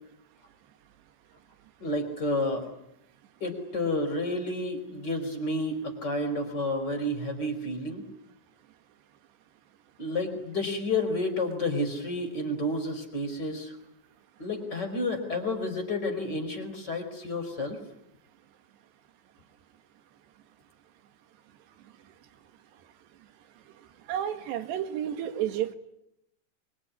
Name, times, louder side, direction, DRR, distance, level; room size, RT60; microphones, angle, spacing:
voice 1, 1.8-2.7 3.4-8.0 10.0-13.7 14.4-17.8, left 2 dB, 25° left, 6 dB, 4.9 m, -30 dB
voice 2, 24.1-25.7, right 10 dB, 75° right, 9 dB, 3.8 m, -31 dB
25.5 x 24.0 x 9.7 m, 0.79 s
omnidirectional pair, 5.0 m